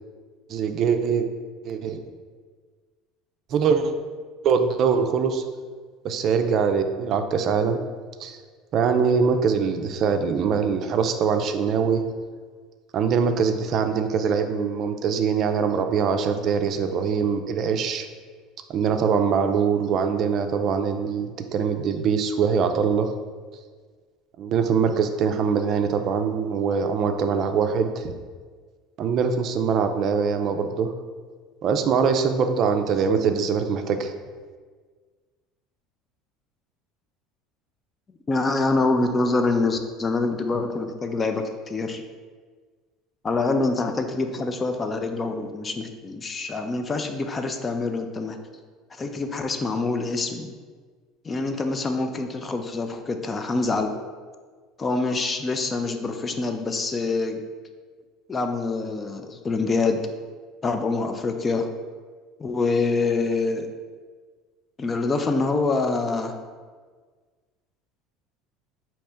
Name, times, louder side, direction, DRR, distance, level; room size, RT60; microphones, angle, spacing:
voice 1, 0.5-1.3 1.6-2.0 3.5-3.9 4.4-5.4 6.0-7.8 8.2-8.4 8.7-12.0 12.9-18.1 18.7-23.1 24.4-28.1 29.0-30.9 31.6-34.1, right 6 dB, 50° right, 7 dB, 0.4 m, -23 dB
voice 2, 38.3-42.0 43.2-48.4 49.0-50.5 51.2-53.9 54.8-57.4 58.3-60.0 60.6-61.7 62.4-63.7 64.8-66.4, left 3 dB, 30° left, 6 dB, 0.4 m, -25 dB
4.2 x 2.9 x 3.4 m, 1.5 s
hypercardioid pair, 80°, 0 cm